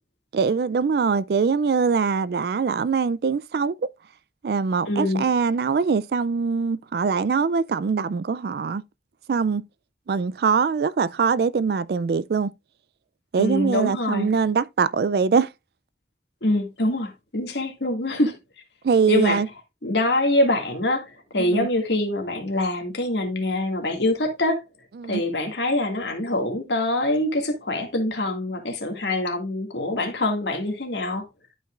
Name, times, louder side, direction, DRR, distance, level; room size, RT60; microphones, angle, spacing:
voice 1, 0.3-3.7 4.4-8.8 9.3-9.6 10.1-12.5 13.3-15.5 18.8-19.5 21.4-21.7 25.0-25.2, right 5 dB, 60° right, 0.3 m, -22 dB
voice 2, 4.8-5.3 13.4-14.3 16.4-18.4 19.1-19.4 19.8-24.6 25.1-31.3, left 1 dB, 80° left, 2.1 m, -24 dB
12.0 x 5.5 x 2.4 m
head